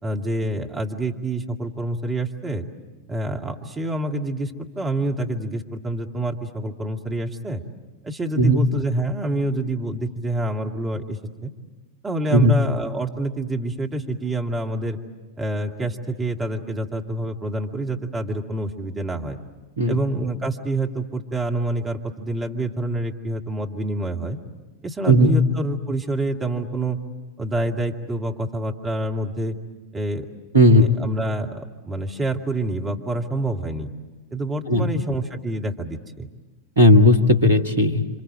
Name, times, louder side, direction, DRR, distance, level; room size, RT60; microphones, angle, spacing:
voice 1, 0.0-2.6 3.1-7.6 8.0-11.5 12.0-15.0 15.4-19.4 19.9-24.4 24.8-27.0 27.4-29.5 29.9-30.3 30.7-33.9 34.3-36.3, right 1 dB, 15° right, 3 dB, 2.2 m, -27 dB
voice 2, 30.5-30.9 34.7-34.9 36.8-38.2, equal, 75° right, 8 dB, 1.7 m, -15 dB
29.5 x 26.0 x 7.7 m, 1.2 s
figure-of-eight pair, 90°, 0 cm